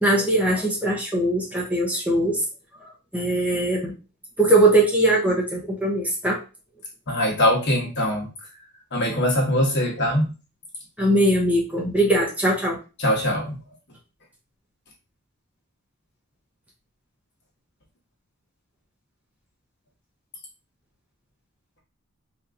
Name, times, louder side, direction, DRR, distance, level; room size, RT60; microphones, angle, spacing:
voice 1, 0.0-2.4 3.1-3.9 4.4-6.4 11.0-12.8, right 1 dB, 5° right, -3 dB, 0.7 m, -21 dB
voice 2, 7.1-8.3 8.9-10.3 13.0-13.6, left 1 dB, 50° left, -1 dB, 1.1 m, -22 dB
3.4 x 2.8 x 2.5 m, 0.32 s
head